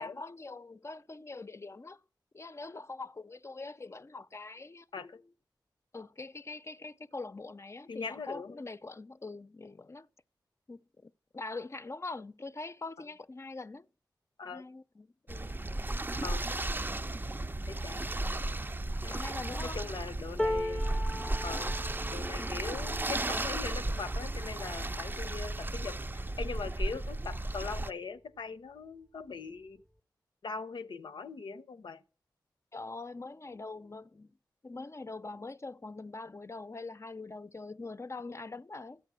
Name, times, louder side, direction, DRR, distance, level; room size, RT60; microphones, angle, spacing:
voice 1, 0.0-2.0 2.3-5.1 5.9-10.1 10.7-13.9 14.4-15.5 19.1-19.8 22.4-22.6 32.7-34.3 34.6-39.0, left 3 dB, 40° left, 0.5 m, -43 dB
voice 2, 7.9-8.6 14.4-14.6 16.2-16.5 17.7-18.6 19.0-19.2 19.6-20.8 21.4-21.7 22.1-29.8 30.4-32.0, left 5 dB, 90° left, 0.7 m, -41 dB
sound 1, 15.3-27.9, right 2 dB, 25° right, 0.5 m, -34 dB
sound 2, 20.4-26.5 27.1-27.3 27.6-28.4 29.3-29.4, left 1 dB, ahead, 0.8 m, -40 dB
13.0 x 9.0 x 6.1 m
cardioid pair, 55°, 8 cm